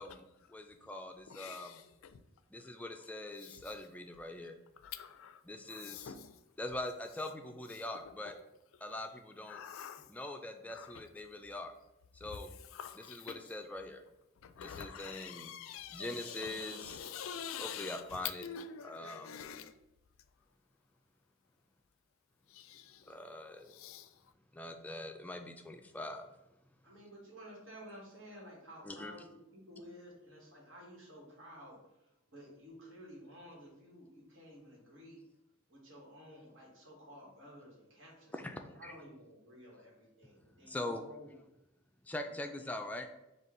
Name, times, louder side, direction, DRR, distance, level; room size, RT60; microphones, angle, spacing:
voice 1, 0.5-1.8 2.5-4.6 5.4-6.1 6.6-8.3 8.8-9.6 10.1-11.7 12.1-12.5 13.1-14.0 14.6-15.5 15.9-17.0 17.6-18.4 18.8-19.3 23.0-23.7 24.5-26.3 28.8-29.1 38.3-39.0 40.6-41.0 42.0-43.1, left 1 dB, 10° left, 0.3 m, -43 dB
voice 2, 1.3-2.2 2.6-3.1 3.4-3.8 4.8-6.4 7.7-8.3 8.7-9.0 9.5-10.2 10.7-11.0 12.2-13.5 14.4-19.8 22.5-23.2 23.6-24.3, left 8 dB, 80° left, 0.4 m, -47 dB
voice 3, 26.8-35.2 35.7-41.4 42.6-42.7, equal, 70° right, 1.4 m, -53 dB
5.1 x 2.4 x 3.7 m
head